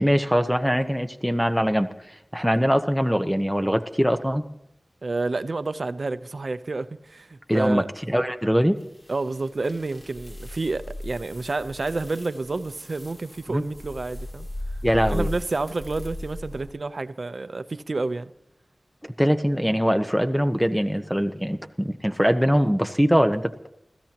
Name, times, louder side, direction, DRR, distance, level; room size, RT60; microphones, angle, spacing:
voice 1, 0.0-4.4 7.5-8.8 13.5-13.6 14.8-15.3 19.2-23.7, equal, ahead, 1.0 m, -22 dB
voice 2, 5.0-7.9 9.1-14.5 15.1-18.3, right 3 dB, 70° right, 0.8 m, -29 dB
sound 1, 8.8-16.7, left 1 dB, 40° left, 3.7 m, -37 dB
27.0 x 16.0 x 3.0 m
wide cardioid pair, 60°, 0 cm